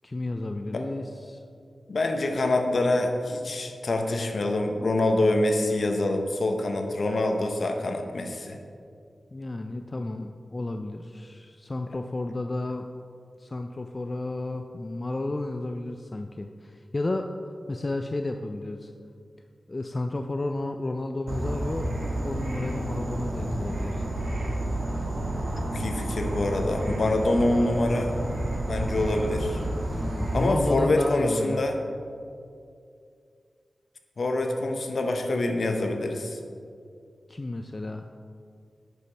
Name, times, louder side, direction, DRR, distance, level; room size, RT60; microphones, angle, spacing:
voice 1, 0.0-1.4 9.3-12.9 13.4-17.3 17.7-18.9 19.7-22.0 22.2-24.1 29.9-31.6 37.3-38.0, left 2 dB, 40° left, 5 dB, 0.4 m, -32 dB
voice 2, 1.9-8.6 25.6-28.1 28.6-29.6 30.3-31.7 34.2-36.4, left 2 dB, 65° left, 4 dB, 0.8 m, -25 dB
Insect / Frog, 21.3-30.5, right 1 dB, 75° right, 1.5 m, -30 dB
9.3 x 6.4 x 3.3 m, 2.4 s
cardioid pair, 50°, 0 cm